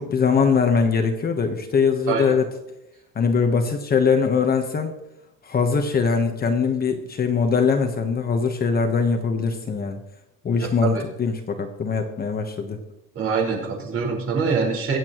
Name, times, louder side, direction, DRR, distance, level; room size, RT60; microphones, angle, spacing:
voice 1, 0.0-2.5 3.1-4.9 5.4-10.0 10.4-12.8, left 5 dB, 25° left, 5 dB, 1.2 m, -22 dB
voice 2, 2.1-2.4 10.6-11.1 13.1-15.0, right 5 dB, 40° right, -2 dB, 5.0 m, -24 dB
25.0 x 8.4 x 3.1 m, 0.90 s
cardioid pair, 160°, 34 cm